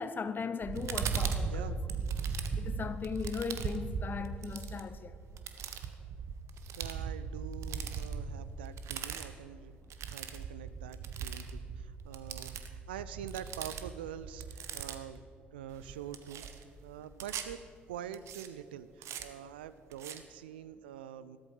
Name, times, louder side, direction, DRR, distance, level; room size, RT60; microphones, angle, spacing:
voice 1, 0.0-1.8 2.6-5.2, left 5 dB, 35° left, 0.9 m, -38 dB
sound 1, 0.6-15.2 15.7-17.5 18.1-18.5 19.0-19.2 19.9-20.2, right 6 dB, 60° right, 1.0 m, -38 dB
voice 2, 1.4-1.8 6.8-9.8 10.1-12.6 12.9-15.3 15.5-16.4 16.8-21.4, right 9 dB, 80° right, 0.4 m, -45 dB
14.0 x 13.0 x 5.0 m
figure-of-eight pair, 50°, 5 cm